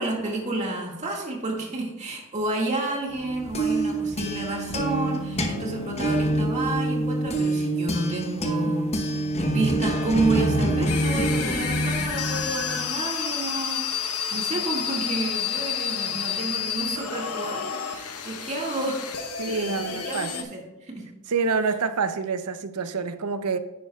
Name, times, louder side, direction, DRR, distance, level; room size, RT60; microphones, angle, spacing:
voice 1, 0.0-21.1, right 2 dB, 30° right, -1 dB, 2.0 m, -30 dB
sound 1, 3.2-12.9, right 1 dB, 30° left, 0.9 m, -26 dB
sound 2, 10.9-20.4, left 7 dB, 90° left, 1.0 m, -30 dB
voice 2, 19.4-20.5 21.3-23.6, right 4 dB, 90° right, 11 dB, 0.6 m, -27 dB
10.0 x 9.3 x 2.3 m, 1.0 s
head